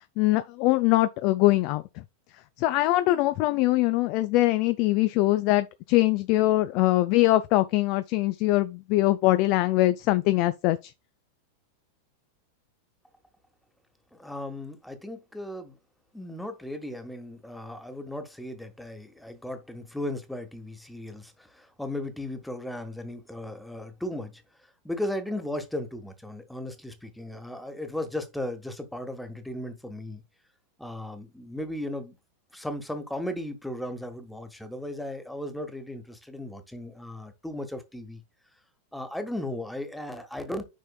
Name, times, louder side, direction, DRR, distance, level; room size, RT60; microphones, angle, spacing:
voice 1, 0.2-1.8 2.6-10.9, left 17 dB, 45° left, 0.4 m, -22 dB
voice 2, 14.1-15.8 16.1-30.2 30.8-32.2 32.5-38.2 38.9-40.7, left 1 dB, 5° left, 1.3 m, -36 dB
9.1 x 5.6 x 2.3 m
figure-of-eight pair, 90°, 0 cm